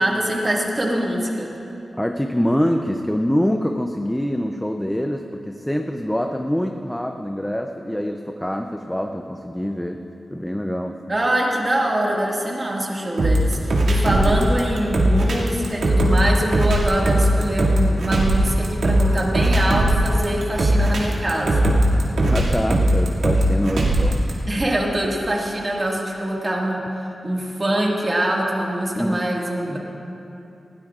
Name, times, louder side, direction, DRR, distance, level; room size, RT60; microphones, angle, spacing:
voice 1, 0.0-1.5 11.1-21.6 24.5-29.8, right 1 dB, 25° right, -3 dB, 1.8 m, -23 dB
voice 2, 1.9-10.0 10.3-11.0 14.1-14.4 22.2-24.2 29.0-29.3, equal, 5° left, 4 dB, 0.5 m, -25 dB
sound 1, 13.2-24.3, right 1 dB, 85° right, 2.2 m, -18 dB
20.5 x 17.0 x 2.4 m, 2.9 s
wide cardioid pair, 145°, 0 cm